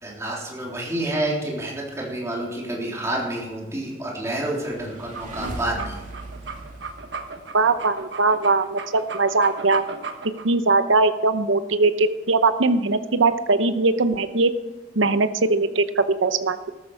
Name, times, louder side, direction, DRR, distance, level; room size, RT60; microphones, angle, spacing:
voice 1, 0.0-6.0, right 1 dB, 15° right, -3 dB, 3.5 m, -29 dB
sound 1, 4.5-8.0, right 1 dB, 40° right, 2.6 m, -38 dB
sound 2, 5.0-10.5, right 4 dB, 65° right, 1.3 m, -36 dB
voice 2, 7.5-9.8 10.4-14.5 15.0-16.7, right 3 dB, 85° right, 11 dB, 0.8 m, -20 dB
13.5 x 13.5 x 4.8 m, 1.1 s
head